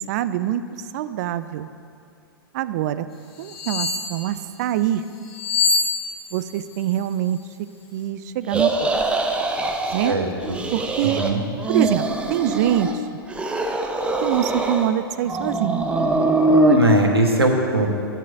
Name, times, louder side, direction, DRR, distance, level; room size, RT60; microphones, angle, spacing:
voice 1, 0.1-0.6 0.9-1.7 2.5-3.1 3.4-5.0 6.3-7.4 7.9-8.9 9.9-10.2 10.7-11.2 11.7-12.0 12.3-12.9 14.2-15.8, right 12 dB, 45° right, 13 dB, 0.5 m, -24 dB
sound 1, 3.4-4.1 5.3-6.5 6.8-7.0, left 4 dB, 75° left, 2.1 m, -23 dB
sound 2, 8.5-10.1 10.4-11.3 11.6-13.0 13.3-14.9 15.3-16.8, right 2 dB, 10° right, 0.7 m, -22 dB
voice 2, 10.0-10.6 11.0-11.4 16.7-17.9, right 2 dB, 85° right, 2 dB, 1.4 m, -20 dB
10.5 x 6.3 x 6.6 m, 2.4 s
figure-of-eight pair, 105°, 13 cm